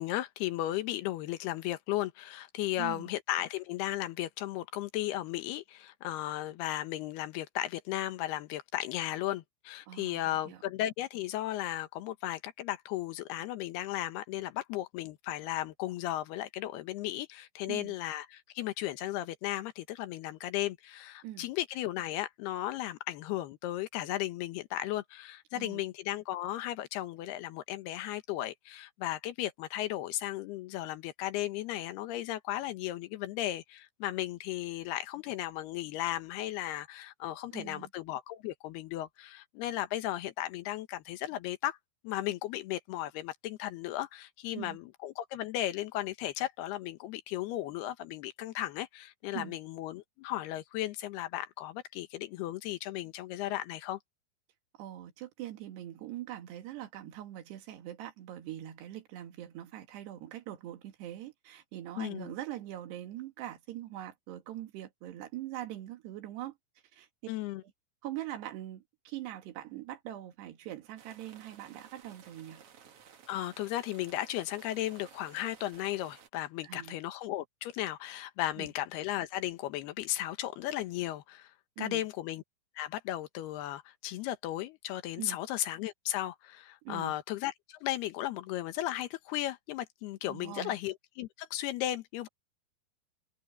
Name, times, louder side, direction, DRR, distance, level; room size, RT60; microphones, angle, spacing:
voice 1, 0.0-41.8 42.0-54.0 62.0-62.3 67.3-67.6 73.3-81.5 81.8-82.4 82.8-92.3, left 14 dB, 75° left, 3.0 m, -35 dB
voice 2, 2.8-3.1 9.9-10.6 17.7-17.9 21.2-21.5 25.5-25.8 37.5-37.9 44.6-44.8 49.3-49.6 54.8-66.5 66.9-67.1 67.6-67.7 68.0-72.6 76.6-77.0 78.6-78.7 81.8-82.1 85.2-85.4 86.8-87.2 90.3-90.8, right 13 dB, 75° right, 3.9 m, -42 dB
sound 1, 71.0-76.3, right 7 dB, 55° right, 1.6 m, -56 dB
omnidirectional pair, 4.9 m